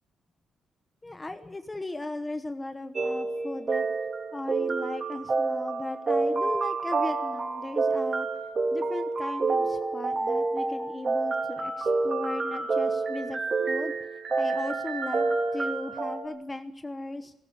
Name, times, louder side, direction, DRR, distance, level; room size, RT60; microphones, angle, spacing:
voice 1, 1.0-3.9 4.3-8.3 8.7-13.4 13.7-13.9 14.4-17.3, left 2 dB, 15° left, 9 dB, 1.1 m, -37 dB
sound 1, 2.9-16.2, right 3 dB, 35° right, 3.5 m, -28 dB
18.5 x 17.0 x 9.7 m, 0.80 s
cardioid pair, 145°, 0 cm